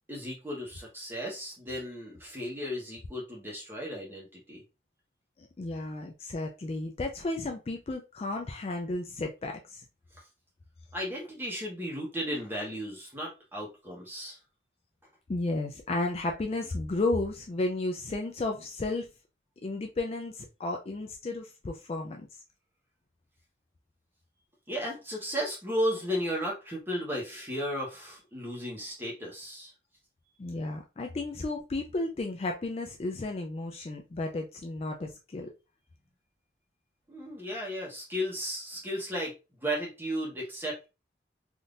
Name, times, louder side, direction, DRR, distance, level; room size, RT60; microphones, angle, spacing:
voice 1, 0.1-4.6 10.9-14.4 24.7-29.7 37.1-39.3 39.6-40.9, equal, 10° right, -2 dB, 1.1 m, -34 dB
voice 2, 5.4-9.8 15.3-19.1 19.6-22.4 30.4-35.5, left 2 dB, 35° left, 3 dB, 0.3 m, -33 dB
3.5 x 2.7 x 2.4 m, 0.28 s
head